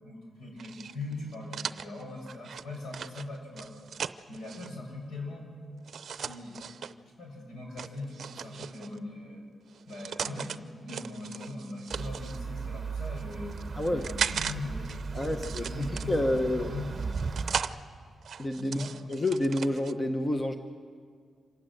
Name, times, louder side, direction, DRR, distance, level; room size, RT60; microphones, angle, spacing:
voice 1, 0.0-3.7 4.3-5.5 6.2-6.6 7.0-9.4 9.9-13.5 13.9-17.0 18.6-18.9, left 2 dB, 75° left, 0 dB, 7.5 m, -40 dB
sound 1, 0.6-4.7 5.8-6.9 7.8-9.0 9.7-10.6 10.9-12.4 13.0-14.5 14.8-16.4 17.0-17.7 18.2-19.9, right 7 dB, 55° right, 0.6 m, -37 dB
sound 2, 11.9-17.6, right 4 dB, 25° right, 1.0 m, -37 dB
voice 2, 15.1-16.7 18.4-18.8 19.1-20.6, left 1 dB, 20° left, 6 dB, 0.8 m, -29 dB
26.5 x 19.0 x 7.8 m, 2.1 s
wide cardioid pair, 170°, 0 cm